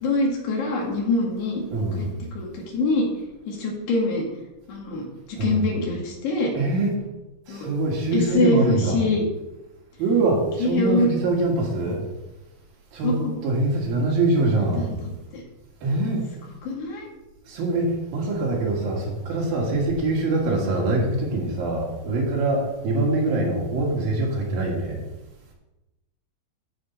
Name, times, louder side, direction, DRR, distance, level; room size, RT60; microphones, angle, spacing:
voice 1, 0.0-1.6 2.0-3.1 3.5-4.3 4.7-6.5 7.5-7.7 8.1-9.2 10.6-11.1 13.0-13.4 14.8-15.4 16.6-17.1, left 2 dB, 85° left, -2 dB, 4.4 m, -24 dB
voice 2, 1.7-2.1 5.4-5.7 6.5-7.0 7.5-9.0 10.0-12.0 12.9-13.2 13.4-14.9 15.8-16.2 17.5-25.0, right 2 dB, 65° right, -2 dB, 3.8 m, -24 dB
13.5 x 5.4 x 5.5 m, 0.99 s
omnidirectional pair, 4.6 m